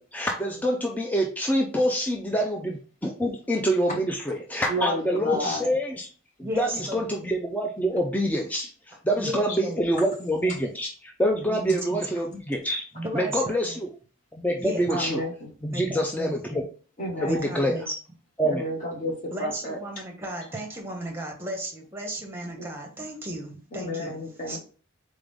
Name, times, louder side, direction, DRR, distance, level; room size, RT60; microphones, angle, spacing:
voice 1, 0.1-6.1 6.6-12.8 13.1-13.9 14.3-15.2 15.6-16.6 17.2-17.8 18.4-18.6, equal, 5° left, 1 dB, 0.4 m, -26 dB
voice 2, 4.7-5.6 9.5-9.9 14.9-15.3 17.0-17.6 18.4-19.8 22.6-22.7 23.7-24.6, left 1 dB, 35° left, -2 dB, 1.3 m, -31 dB
voice 3, 6.4-7.2 9.2-9.9 11.4-11.8 12.9-13.8 14.6-15.0 15.7-16.6 17.2-17.9 19.3-24.2 24.5-24.6, right 1 dB, 10° right, 1 dB, 1.0 m, -34 dB
4.0 x 3.7 x 3.4 m, 0.40 s
head